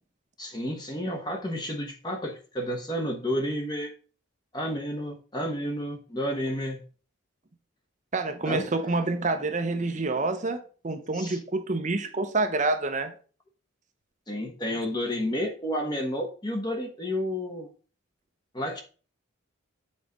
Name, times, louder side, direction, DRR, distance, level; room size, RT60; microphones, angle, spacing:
voice 1, 0.4-3.9 4.5-6.8 8.5-8.7 11.1-11.4 14.3-17.7 18.5-18.8, equal, 20° left, 1.1 m, -31 dB
voice 2, 8.1-13.1, right 3 dB, 35° right, 0.7 m, -27 dB
7.1 x 4.2 x 5.2 m
head